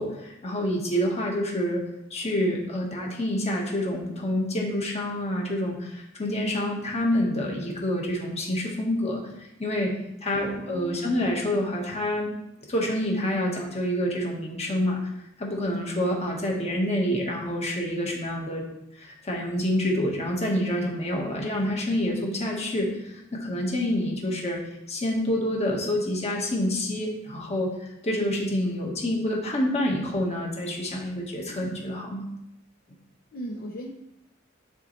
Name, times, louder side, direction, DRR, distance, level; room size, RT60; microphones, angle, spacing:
voice 1, 0.0-1.8 2.1-9.9 10.2-12.3 12.7-15.1 15.4-18.6 18.9-24.6 24.9-32.2, left 1 dB, 35° left, -1 dB, 1.4 m, -27 dB
voice 2, 10.3-11.1 33.3-33.9, equal, 50° left, -2 dB, 0.7 m, -38 dB
9.8 x 4.3 x 3.2 m, 0.82 s
head